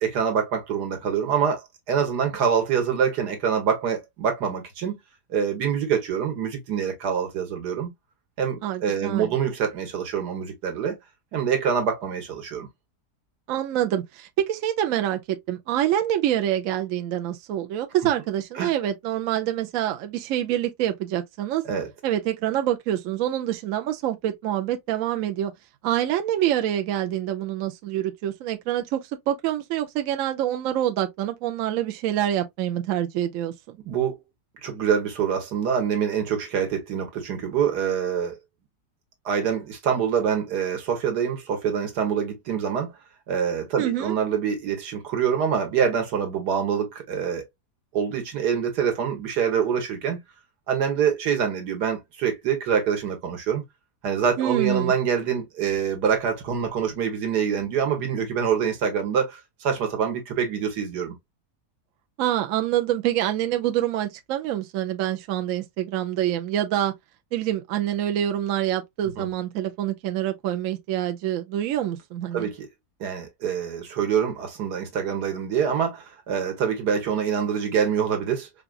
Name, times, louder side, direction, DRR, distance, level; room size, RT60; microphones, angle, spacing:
voice 1, 0.0-5.0 5.3-7.9 8.4-11.0 11.3-12.7 18.6-18.7 21.6-21.9 33.8-34.2 34.6-38.4 39.3-42.9 43.3-47.5 47.9-50.2 50.7-53.6 54.0-61.1 69.2-69.3 72.3-72.7 73.0-78.5, right 7 dB, 85° right, 1.7 m, -25 dB
voice 2, 8.6-9.3 13.5-21.6 22.0-25.5 25.8-33.8 43.8-44.2 54.4-54.9 62.2-66.9 67.3-72.5, right 12 dB, 65° right, 0.9 m, -26 dB
4.7 x 2.4 x 2.3 m
omnidirectional pair, 1.7 m